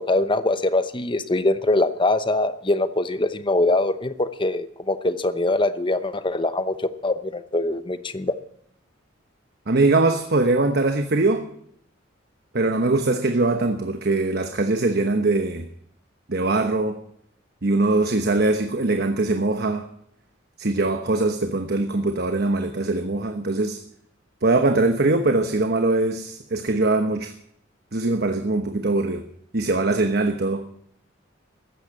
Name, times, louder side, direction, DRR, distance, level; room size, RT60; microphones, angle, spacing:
voice 1, 0.0-6.7 7.0-8.3, left 2 dB, 25° left, 12 dB, 0.9 m, -23 dB
voice 2, 9.7-11.5 12.5-15.6 16.3-17.0 17.6-19.9 20.6-23.8 24.4-27.3 27.9-29.2 29.5-30.7, right 2 dB, 55° right, 7 dB, 1.1 m, -22 dB
15.0 x 12.0 x 7.5 m, 0.68 s
head